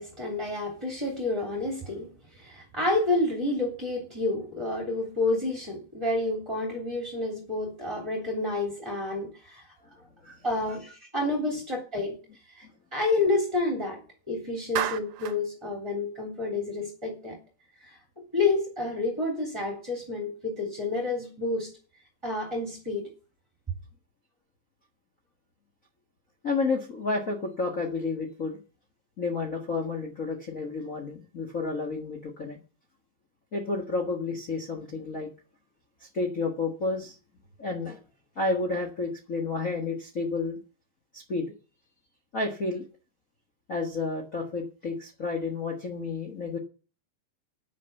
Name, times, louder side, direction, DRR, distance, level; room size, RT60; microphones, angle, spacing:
voice 1, 0.0-9.6 10.2-12.2 12.6-12.7 12.9-17.4 17.8-18.0 18.3-21.7 22.2-23.1, left 2 dB, 10° right, 2.4 m, -29 dB
Clapping, 14.8-15.4, right 11 dB, 70° right, 2.1 m, -31 dB
voice 2, 26.4-28.6 29.2-32.6 33.5-35.3 36.0-37.2 37.6-38.0 38.3-40.6 41.1-41.5 42.3-42.8 43.7-46.6, left 3 dB, 70° left, 0.7 m, -31 dB
9.7 x 9.5 x 7.0 m
omnidirectional pair, 4.3 m